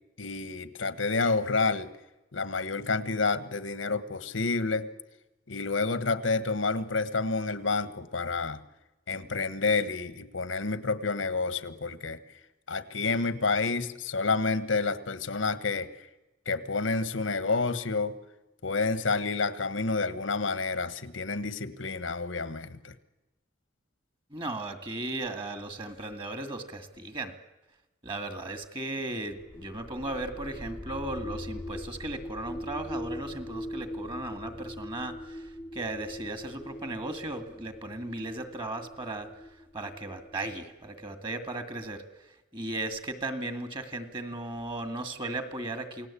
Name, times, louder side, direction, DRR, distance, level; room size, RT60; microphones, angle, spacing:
voice 1, 0.2-1.9 2.3-4.9 5.5-8.6 9.1-12.2 12.7-15.9 16.5-18.1 18.6-22.9, left 4 dB, 85° left, 14 dB, 1.5 m, -29 dB
voice 2, 24.3-27.3 28.0-39.3 39.7-42.0 42.5-46.1, right 2 dB, 25° right, 9 dB, 2.1 m, -36 dB
sound 1, 29.3-41.1, left 1 dB, 10° left, 0.8 m, -41 dB
28.5 x 18.0 x 8.5 m, 1.0 s
head